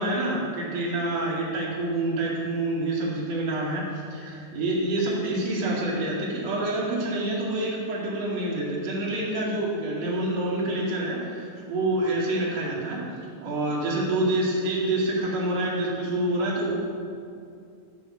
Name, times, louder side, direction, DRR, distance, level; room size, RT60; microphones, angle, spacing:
voice 1, 0.0-13.0 13.4-16.8, right 1 dB, 45° right, -5 dB, 3.2 m, -27 dB
12.0 x 6.2 x 6.4 m, 2.4 s
omnidirectional pair, 4.6 m